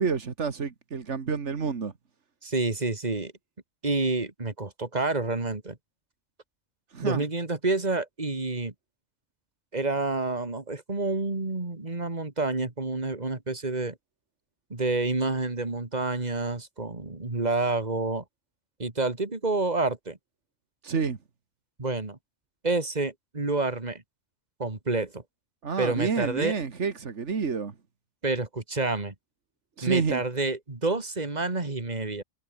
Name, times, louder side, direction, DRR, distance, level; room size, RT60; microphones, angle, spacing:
voice 1, 0.0-1.9 6.9-7.2 20.8-21.2 25.6-27.7 29.8-30.2, right 5 dB, 90° right, 2.0 m, -29 dB
voice 2, 2.4-3.3 3.8-5.8 7.0-8.7 9.7-13.9 14.7-18.2 18.8-20.2 21.8-22.2 22.6-24.0 24.6-25.2 25.8-26.5 28.2-29.1 29.8-32.2, right 3 dB, 35° right, 2.7 m, -28 dB
omnidirectional pair, 1.2 m